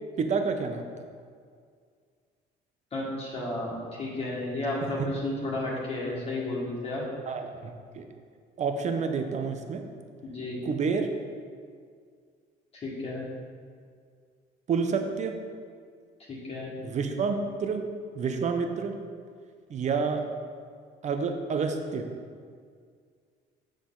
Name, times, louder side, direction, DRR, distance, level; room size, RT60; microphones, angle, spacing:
voice 1, 0.2-0.9 4.8-4.9 7.3-8.1 8.6-9.8 10.6-11.1 14.7-15.4 16.8-17.8 18.2-18.9 19.7-20.2 21.0-22.1, right 5 dB, 45° right, 6 dB, 0.8 m, -29 dB
voice 2, 2.9-7.0 10.2-10.6 12.8-13.2 16.3-16.7, left 2 dB, 35° left, -6 dB, 1.7 m, -32 dB
7.4 x 6.6 x 3.9 m, 2.1 s
cardioid pair, 110°, 17 cm